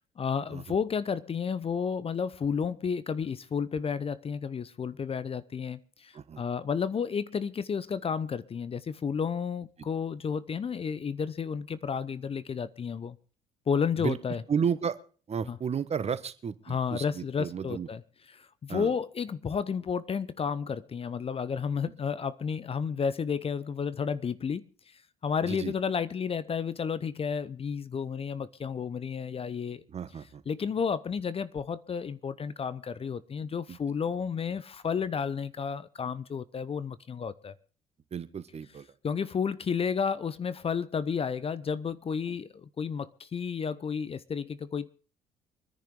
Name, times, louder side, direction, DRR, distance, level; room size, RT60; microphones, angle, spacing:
voice 1, 0.2-13.2 13.7-14.4 15.5-15.6 16.7-18.0 18.3-29.8 30.5-37.5 39.0-44.9, left 6 dB, 35° left, 0.8 m, -32 dB
voice 2, 14.5-15.0 15.3-17.9 18.7-18.9 25.5-25.7 29.9-30.4 33.7-33.8 38.1-38.9, right 7 dB, 35° right, 1.2 m, -33 dB
25.5 x 10.5 x 3.7 m
hypercardioid pair, 55°, 18 cm